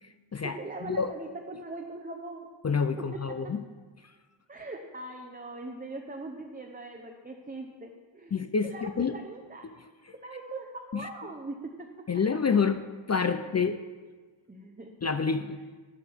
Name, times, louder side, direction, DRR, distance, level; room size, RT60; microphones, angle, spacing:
voice 1, 0.0-1.1 2.6-3.6 8.3-9.2 9.6-9.7 10.1-10.2 10.9-11.1 12.1-12.8 13.1-13.8 15.0-15.6, left 5 dB, 35° left, 9 dB, 0.4 m, -28 dB
voice 2, 0.6-2.5 4.5-8.3 8.6-9.6 10.1-11.9 14.5-14.9, right 2 dB, 20° right, 2 dB, 0.8 m, -41 dB
11.5 x 10.5 x 3.5 m, 1.4 s
wide cardioid pair, 105°, 46 cm